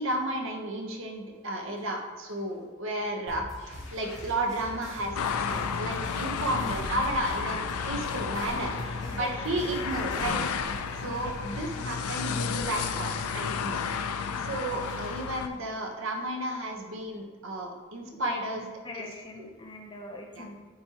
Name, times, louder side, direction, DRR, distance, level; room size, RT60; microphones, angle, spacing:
voice 1, 0.0-5.1 5.4-10.4 11.0-13.9 14.4-18.7 20.4-20.5, right 1 dB, 60° right, 1 dB, 1.0 m, -33 dB
Bathtub (filling or washing), 1.4-1.8 2.3-2.4 3.6-16.7 17.1-17.2, left 1 dB, 55° left, 1.2 m, -48 dB
sound 1, 3.3-10.3, left 1 dB, 35° right, 1.3 m, -44 dB
cars passing, 5.1-15.5, left 6 dB, 85° left, 0.4 m, -32 dB
voice 2, 9.0-9.3 18.1-20.7, left 2 dB, 20° left, 2 dB, 0.6 m, -43 dB
8.6 x 4.3 x 2.9 m, 1.5 s
head